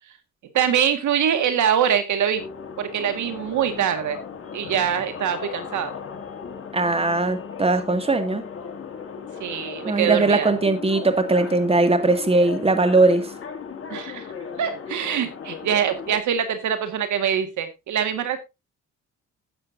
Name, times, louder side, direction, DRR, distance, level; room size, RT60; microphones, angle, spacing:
voice 1, 0.5-2.4 2.8-4.2 4.5-5.9 9.4-10.5 13.9-14.3 14.6-18.4, right 9 dB, 75° right, 9 dB, 1.8 m, -23 dB
sound 1, 2.4-16.2, left 6 dB, 45° left, 2.4 m, -36 dB
voice 2, 6.7-8.4 9.8-13.3, right 2 dB, 20° right, 8 dB, 2.0 m, -20 dB
17.0 x 7.5 x 2.6 m, 0.23 s
cardioid pair, 90°, 30 cm